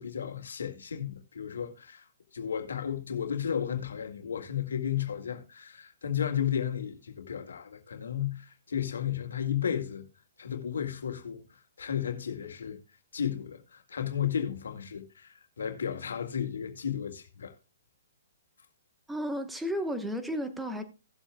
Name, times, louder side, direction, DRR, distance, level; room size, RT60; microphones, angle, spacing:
voice 1, 0.0-2.0 2.3-10.1 10.4-11.4 11.8-12.8 13.1-17.5, left 9 dB, 90° left, 1.9 m, -33 dB
voice 2, 19.1-20.8, equal, 5° right, 1.0 m, -33 dB
18.0 x 7.3 x 2.2 m
hypercardioid pair, 160°, 0 cm